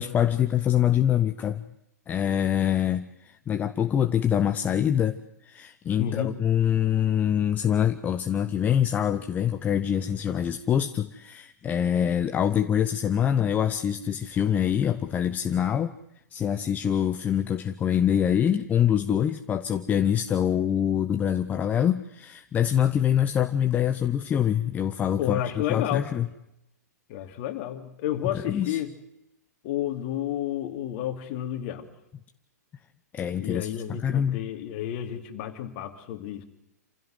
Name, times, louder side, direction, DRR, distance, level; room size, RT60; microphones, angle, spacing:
voice 1, 0.0-1.7 2.1-5.2 5.4-15.9 16.3-25.4 25.7-26.3 28.3-28.8 33.1-33.7 34.0-34.4, left 9 dB, 15° left, 8 dB, 0.8 m, -25 dB
voice 2, 6.0-6.4 25.2-26.2 27.1-28.9 29.6-31.9 33.3-36.4, left 11 dB, 40° left, 7 dB, 2.8 m, -31 dB
27.5 x 16.0 x 7.9 m, 0.85 s
figure-of-eight pair, 115°, 9 cm